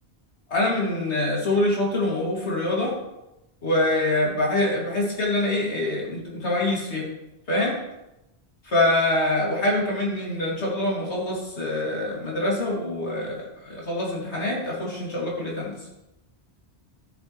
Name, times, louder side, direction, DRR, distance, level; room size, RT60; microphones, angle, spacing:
voice 1, 0.5-2.9 3.6-7.1 7.5-7.8 8.7-15.8, left 1 dB, 90° left, -4 dB, 2.9 m, -25 dB
14.0 x 7.1 x 3.2 m, 0.92 s
omnidirectional pair, 1.1 m